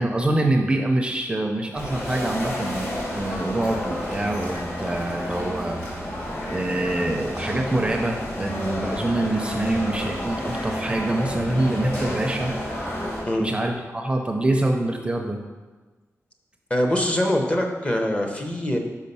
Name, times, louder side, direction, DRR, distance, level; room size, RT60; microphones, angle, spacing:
voice 1, 0.0-5.9 6.5-12.8 13.4-15.4, right 1 dB, 20° right, 2 dB, 0.5 m, -25 dB
sound 1, 1.7-13.2, left 1 dB, 45° left, 2.0 m, -30 dB
voice 2, 16.7-18.8, left 1 dB, 20° left, 3 dB, 0.7 m, -23 dB
5.5 x 4.7 x 5.4 m, 1.3 s
wide cardioid pair, 170°, 5 cm